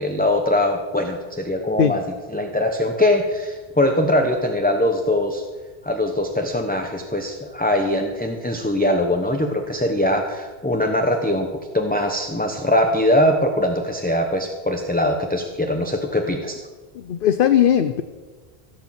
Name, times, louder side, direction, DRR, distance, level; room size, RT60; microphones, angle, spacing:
voice 1, 0.0-2.0 2.3-5.4 5.8-11.5 11.7-16.6, left 1 dB, 10° left, 3 dB, 0.9 m, -21 dB
voice 2, 16.9-18.0, left 9 dB, 60° left, 10 dB, 0.8 m, -18 dB
16.0 x 6.8 x 7.5 m, 1.3 s
omnidirectional pair, 1.1 m